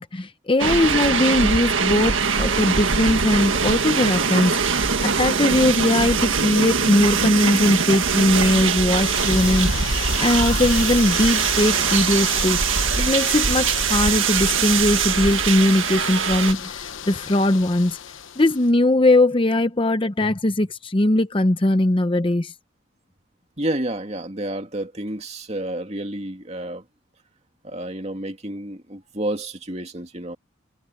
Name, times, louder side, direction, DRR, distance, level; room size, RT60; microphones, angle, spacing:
voice 1, 0.0-12.6 13.0-18.0 18.4-22.5, left 1 dB, 25° left, 0.7 m, -20 dB
sound 1, 0.6-16.5, right 6 dB, 80° right, 1.7 m, -22 dB
sound 2, 9.0-18.7, left 7 dB, 75° left, 1.0 m, -33 dB
voice 2, 23.6-26.8 27.6-30.4, right 1 dB, 35° right, 2.4 m, -30 dB
head